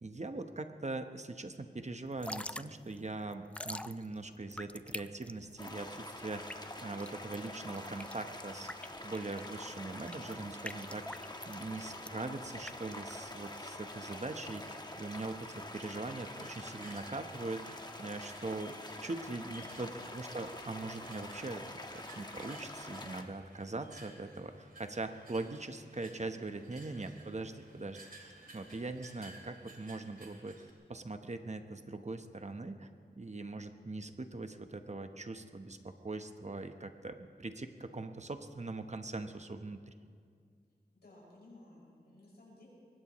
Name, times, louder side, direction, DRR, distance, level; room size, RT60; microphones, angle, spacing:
voice 1, 0.0-8.7 9.0-17.6 18.0-21.6 21.9-30.5 30.9-32.9 33.2-39.9, right 3 dB, 40° right, 7 dB, 1.0 m, -41 dB
Drip / Trickle dribble, 2.1-13.7, left 1 dB, 5° left, 0.4 m, -47 dB
sound 1, 5.6-23.2, left 1 dB, 25° left, 1.3 m, -46 dB
sound 2, 15.9-30.7, right 2 dB, 55° right, 2.5 m, -57 dB
voice 2, 19.4-20.2 40.9-42.7, left 2 dB, 70° left, -6 dB, 5.8 m, -57 dB
23.0 x 20.0 x 3.1 m, 2.1 s
wide cardioid pair, 55°, 18 cm